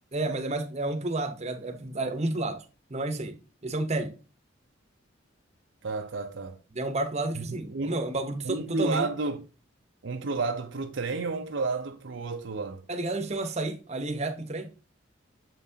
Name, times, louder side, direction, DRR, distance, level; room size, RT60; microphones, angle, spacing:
voice 1, 0.1-2.6 2.9-4.2 6.7-9.1 12.9-14.7, right 2 dB, 35° right, 0.9 m, -31 dB
voice 2, 5.8-6.6 7.4-8.0 8.4-9.4 10.0-12.8, right 3 dB, 65° right, 0.6 m, -31 dB
7.2 x 5.7 x 2.7 m
head